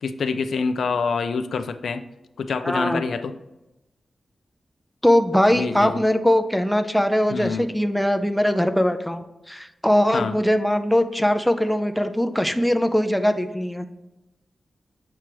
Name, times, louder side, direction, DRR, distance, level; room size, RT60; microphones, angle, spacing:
voice 1, 0.0-2.0 2.4-3.3 5.5-6.0 7.3-7.7 10.1-10.4, left 5 dB, 85° left, 10 dB, 0.4 m, -26 dB
voice 2, 2.6-3.0 5.0-13.9, equal, ahead, 7 dB, 0.4 m, -21 dB
7.5 x 4.7 x 3.0 m, 0.97 s
wide cardioid pair, 125°, 0 cm